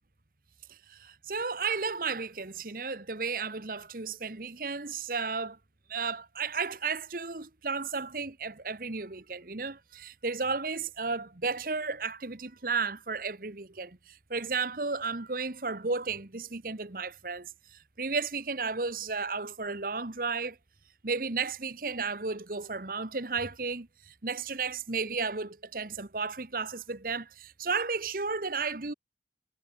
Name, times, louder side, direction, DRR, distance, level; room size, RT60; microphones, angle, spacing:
voice 1, 0.7-5.6 5.9-20.6 21.0-28.9, right 4 dB, 50° right, 1.3 m, -33 dB
head